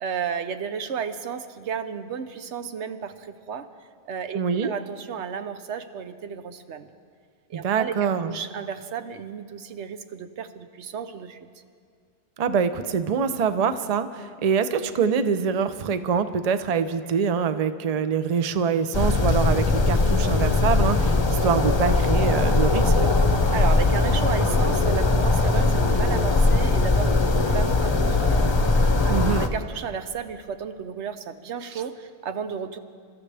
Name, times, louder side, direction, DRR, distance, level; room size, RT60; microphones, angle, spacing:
voice 1, 0.0-3.7 4.1-6.9 7.5-8.0 8.3-11.4 23.5-28.4 29.0-32.8, right 7 dB, 85° right, 9 dB, 1.1 m, -33 dB
voice 2, 4.3-4.7 7.5-8.4 12.4-23.1 29.1-29.5, right 6 dB, 45° right, 11 dB, 0.6 m, -24 dB
sound 1, 18.9-29.5, left 3 dB, 30° left, 0.7 m, -20 dB
28.0 x 14.0 x 3.4 m, 2.1 s
omnidirectional pair, 1.1 m